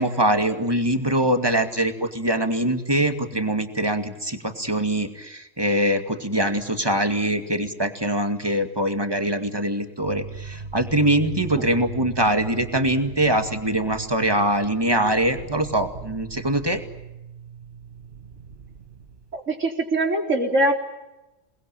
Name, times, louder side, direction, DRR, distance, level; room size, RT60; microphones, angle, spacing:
voice 1, 0.0-16.8, right 1 dB, 20° right, 6 dB, 2.3 m, -23 dB
sound 1, 10.0-19.4, right 5 dB, 45° right, 1.3 m, -39 dB
voice 2, 19.3-20.7, right 1 dB, 80° right, 2 dB, 4.4 m, -22 dB
28.5 x 20.5 x 9.0 m, 0.99 s
omnidirectional pair, 1.3 m